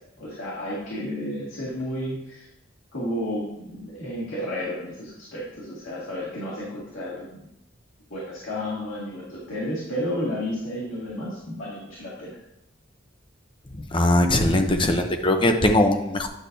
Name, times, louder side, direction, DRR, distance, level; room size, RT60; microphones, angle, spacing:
voice 1, 0.2-2.5 2.9-7.4 8.1-12.4, equal, 85° left, -7 dB, 2.1 m, -32 dB
voice 2, 13.9-16.3, left 1 dB, 25° left, 5 dB, 0.7 m, -20 dB
10.0 x 6.0 x 2.7 m, 0.84 s
head